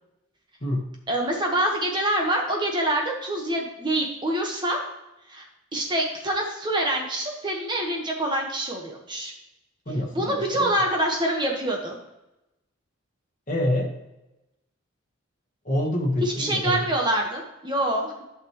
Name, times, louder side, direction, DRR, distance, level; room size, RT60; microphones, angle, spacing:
voice 1, 1.1-4.8 5.3-5.5 5.7-9.3 10.1-12.0 16.2-18.2, right 1 dB, 20° right, 0 dB, 1.3 m, -26 dB
voice 2, 9.8-10.7 13.5-14.0 15.6-16.9, left 1 dB, 40° left, -3 dB, 1.7 m, -26 dB
11.5 x 6.1 x 3.1 m, 0.94 s
head